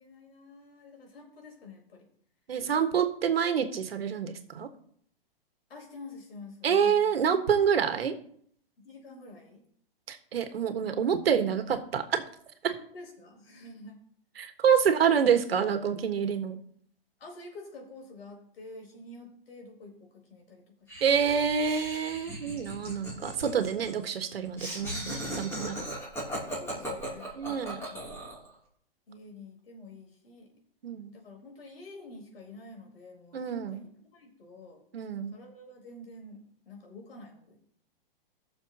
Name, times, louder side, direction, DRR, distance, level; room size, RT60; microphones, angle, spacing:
voice 1, 0.0-2.1 5.7-7.2 8.8-9.6 12.7-14.0 14.9-15.0 17.2-20.9 26.4-28.2 29.1-30.5 31.1-34.8 35.3-37.6, left 2 dB, 85° left, 1 dB, 4.3 m, -48 dB
voice 2, 2.5-4.7 6.6-8.1 10.1-12.2 12.6-12.7 14.4-16.6 21.0-25.8 27.3-27.8 30.8-31.1 33.3-33.8 34.9-35.4, right 7 dB, 90° right, 7 dB, 1.6 m, -27 dB
Laughter, 20.9-28.5, right 1 dB, 10° left, 2.9 m, -38 dB
18.5 x 6.8 x 2.9 m, 0.62 s
hypercardioid pair, 155°, 29 cm